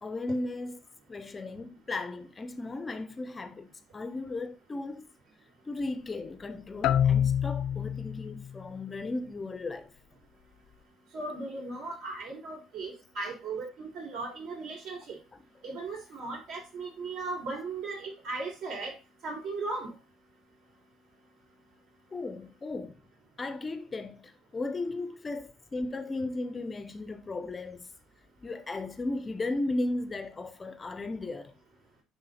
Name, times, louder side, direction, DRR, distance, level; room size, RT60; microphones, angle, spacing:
voice 1, 0.0-0.8 1.1-5.1 5.7-10.0 22.1-23.0 23.4-27.9 28.4-31.5, left 2 dB, 20° left, 0.5 m, -35 dB
sound 1, 6.8-8.5, left 9 dB, 75° left, 0.4 m, -26 dB
voice 2, 11.1-15.2 15.6-18.9 19.2-19.9, right 3 dB, 70° right, 4.0 m, -37 dB
9.6 x 3.6 x 4.1 m
cardioid pair, 155°, 0 cm